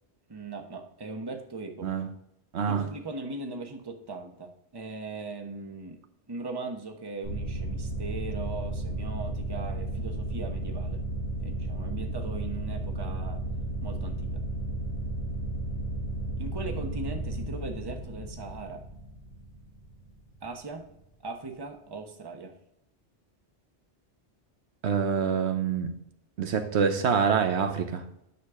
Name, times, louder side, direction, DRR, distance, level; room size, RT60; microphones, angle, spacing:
voice 1, 0.3-1.9 2.7-6.0 6.3-11.0 11.4-13.4 13.8-14.4 16.4-18.8 20.4-20.9 21.2-22.6, right 3 dB, 25° right, 0.9 m, -39 dB
sound 1, 7.2-20.5, right 1 dB, 90° left, 3.8 m, -34 dB
voice 2, 24.8-25.9 26.4-28.0, right 6 dB, 75° right, 1.1 m, -26 dB
9.6 x 6.5 x 3.6 m
omnidirectional pair, 1.2 m